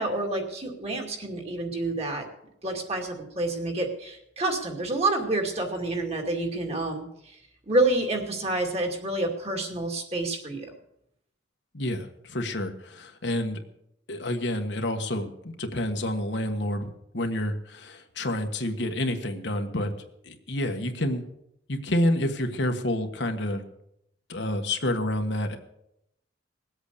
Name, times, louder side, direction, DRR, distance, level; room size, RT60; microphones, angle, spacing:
voice 1, 0.0-2.3 2.6-7.4 7.7-10.7, right 2 dB, 35° right, 3 dB, 2.4 m, -28 dB
voice 2, 11.7-13.6 14.1-19.9 20.2-21.2 21.7-23.6 24.3-25.6, left 1 dB, 65° left, 5 dB, 1.5 m, -28 dB
19.5 x 8.2 x 6.8 m, 0.79 s
head